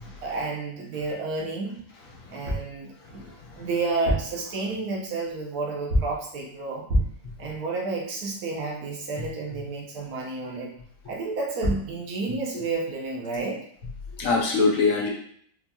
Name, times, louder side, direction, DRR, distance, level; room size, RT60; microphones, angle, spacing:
voice 1, 0.2-1.8 2.3-3.3 3.5-6.9 7.4-10.7 11.1-13.6, right 3 dB, 85° right, -2 dB, 1.3 m, -31 dB
sound 1, 2.5-2.8 3.9-4.4 5.9-6.3 6.9-7.3 11.3-11.4 11.6-12.0, equal, 70° right, 1.6 m, -26 dB
voice 2, 3.0-3.7 12.5-12.6 14.2-15.1, left 4 dB, 65° left, -1 dB, 1.1 m, -25 dB
4.4 x 2.7 x 2.2 m, 0.62 s
omnidirectional pair, 1.6 m